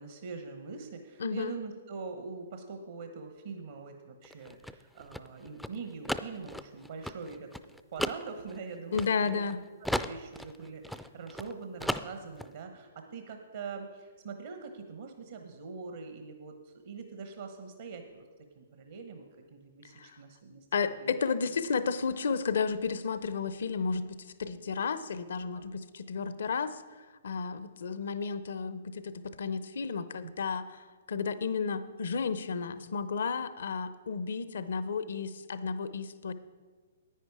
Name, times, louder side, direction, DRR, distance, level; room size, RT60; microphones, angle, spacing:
voice 1, 0.0-7.5 7.9-9.4 9.8-18.2 18.6-21.1 25.5-25.6 30.2-30.3, right 4 dB, 65° right, 5 dB, 1.0 m, -43 dB
voice 2, 1.2-1.5 8.9-9.6 19.9-20.2 20.7-24.0 24.4-30.8 31.1-36.3, left 5 dB, 70° left, 14 dB, 0.6 m, -32 dB
sound 1, 4.2-9.5 9.8-11.5 11.8-12.5, left 1 dB, ahead, 0.3 m, -36 dB
10.0 x 9.2 x 4.8 m, 1.4 s
hypercardioid pair, 130°, 0 cm